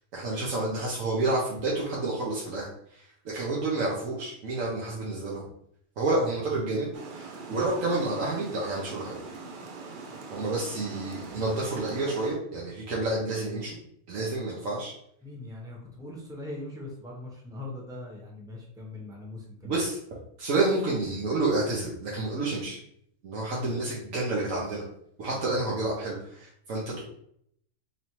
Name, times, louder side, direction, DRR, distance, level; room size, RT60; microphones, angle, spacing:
voice 1, 0.1-5.5 6.0-9.2 10.3-13.8 14.1-14.9 19.6-20.0 20.4-22.8 23.2-24.8 25.2-27.0, right 2 dB, 85° right, -5 dB, 1.3 m, -29 dB
Water, 6.9-12.3, right 4 dB, 50° right, 0.7 m, -42 dB
voice 2, 15.2-19.8 25.2-25.4, left 2 dB, 5° right, -2 dB, 0.7 m, -41 dB
4.1 x 3.2 x 3.0 m, 0.68 s
omnidirectional pair, 1.4 m